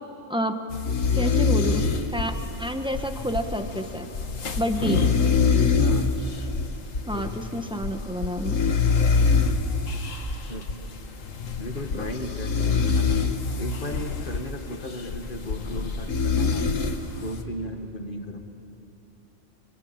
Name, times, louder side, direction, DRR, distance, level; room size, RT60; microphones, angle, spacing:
sound 1, 0.7-17.4, left 4 dB, 85° left, 1.8 m, -25 dB
voice 1, 1.1-1.8 2.1-2.3 2.6-4.1 4.6-5.0 7.1-8.6, equal, 5° right, 5 dB, 1.3 m, -29 dB
voice 2, 5.8-6.2 7.1-7.7 10.5-10.7 11.6-13.2 13.6-16.7 17.2-18.4, left 1 dB, 40° left, 4 dB, 2.1 m, -35 dB
25.5 x 24.5 x 8.9 m, 2.9 s
omnidirectional pair, 1.3 m